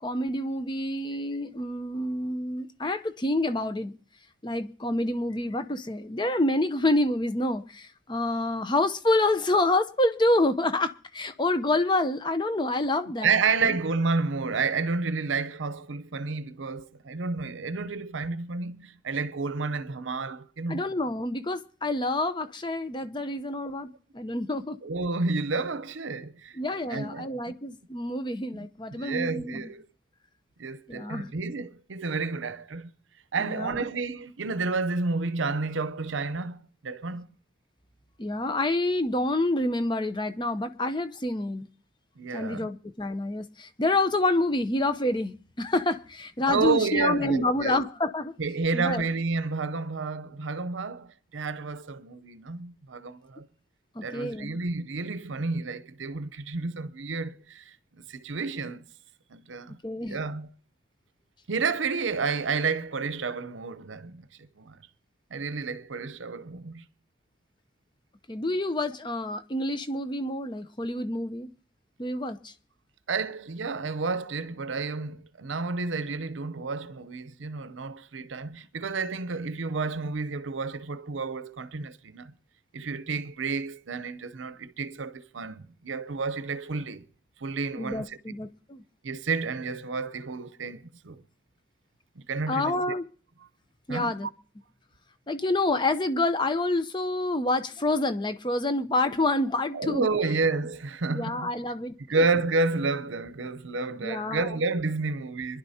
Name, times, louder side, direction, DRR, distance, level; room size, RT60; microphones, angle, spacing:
voice 1, 0.0-3.9 4.4-13.8 20.7-24.8 26.5-29.7 30.9-31.3 33.4-33.8 38.2-41.7 42.3-48.3 48.7-49.1 54.0-54.6 59.8-60.2 68.3-71.5 72.0-72.5 87.8-88.8 92.5-93.0 93.9-94.3 95.3-100.1 101.1-102.0 104.0-104.5, left 2 dB, 25° left, 0.7 m, -28 dB
voice 2, 13.2-20.8 24.8-26.6 26.9-27.5 28.5-29.9 30.6-32.9 33.3-37.3 42.2-42.7 46.5-47.8 48.4-53.5 54.0-58.8 59.3-60.5 61.5-64.8 65.3-66.9 73.1-82.3 82.7-87.0 87.4-88.2 89.0-91.2 92.2-93.0 93.9-94.1 99.7-101.5 102.1-105.6, right 4 dB, 80° right, 0.7 m, -30 dB
25.5 x 11.0 x 2.8 m
head